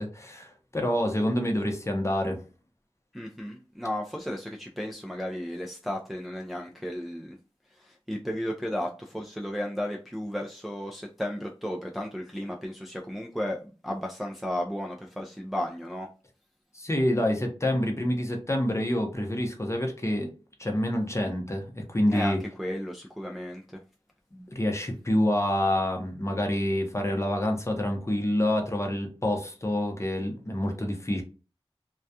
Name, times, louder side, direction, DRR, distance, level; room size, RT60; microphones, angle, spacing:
voice 1, 0.0-2.4 16.7-20.3 20.6-22.4 24.3-31.2, left 1 dB, 25° left, 0.7 m, -27 dB
voice 2, 3.1-7.4 7.9-13.6 13.8-16.1 22.1-23.6, equal, ahead, 0.4 m, -34 dB
2.3 x 2.2 x 2.7 m
wide cardioid pair, 50°, 11 cm